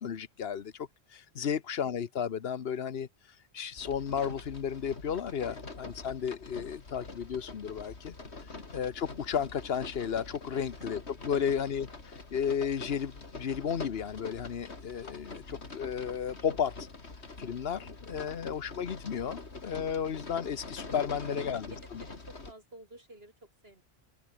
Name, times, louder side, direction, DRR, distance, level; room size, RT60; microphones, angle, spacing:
voice 1, 0.0-3.1 3.5-8.1 8.7-11.9 12.3-16.8 17.4-21.6 21.9-22.0, left 7 dB, 65° left, 1.2 m, -33 dB
sound 1, 3.8-22.5, left 3 dB, 85° left, 3.1 m, -44 dB
voice 2, 8.4-8.7 10.5-10.9 11.3-11.4 21.1-23.8, right 1 dB, 65° right, 7.0 m, -53 dB
open air
omnidirectional pair, 1.1 m